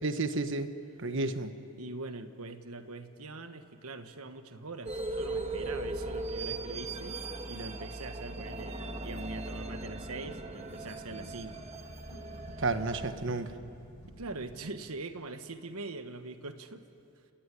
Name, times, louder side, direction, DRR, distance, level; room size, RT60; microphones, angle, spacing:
voice 1, 0.0-0.7 1.0-1.5 12.6-13.5, right 3 dB, 55° right, 9 dB, 1.3 m, -31 dB
voice 2, 1.8-7.2 7.5-11.6 14.2-16.8, right 3 dB, 80° right, 9 dB, 1.5 m, -43 dB
sound 1, 4.9-13.1, right 2 dB, 30° right, 1.4 m, -38 dB
sound 2, 6.9-8.0 8.4-15.2, equal, 85° left, 7.8 m, -52 dB
29.0 x 17.5 x 10.0 m, 2.6 s
head